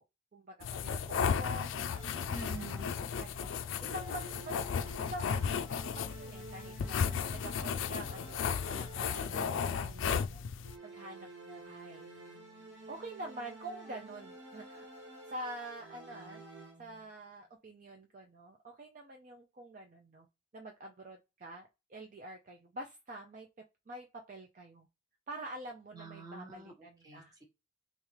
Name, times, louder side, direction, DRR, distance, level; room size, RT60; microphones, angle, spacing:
voice 1, 0.3-2.2 3.0-4.6 5.0-10.4 10.8-12.1 12.9-14.9 15.3-16.4 16.8-20.3 20.5-23.5 23.9-24.9 25.3-27.4, right 1 dB, 40° right, 3 dB, 0.5 m, -47 dB
sound 1, 0.6-10.8, left 7 dB, 90° left, 0.4 m, -34 dB
sound 2, 1.9-3.4 3.8-10.2 10.6-17.1, right 2 dB, 70° right, 1.3 m, -51 dB
voice 2, 2.3-2.9 25.9-27.4, right 2 dB, 20° right, 2 dB, 0.9 m, -47 dB
3.5 x 3.0 x 3.2 m, 0.25 s
head